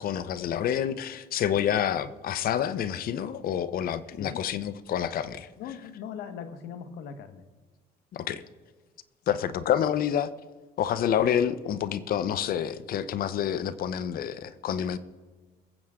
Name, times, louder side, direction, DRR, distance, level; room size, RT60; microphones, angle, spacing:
voice 1, 0.0-5.5 8.1-8.4 9.3-10.3 10.8-15.0, left 9 dB, 60° left, 14 dB, 0.8 m, -28 dB
voice 2, 4.2-4.5 5.6-7.4, left 7 dB, 80° left, 9 dB, 1.3 m, -40 dB
22.5 x 7.8 x 3.7 m, 1.3 s
cardioid pair, 110°, 17 cm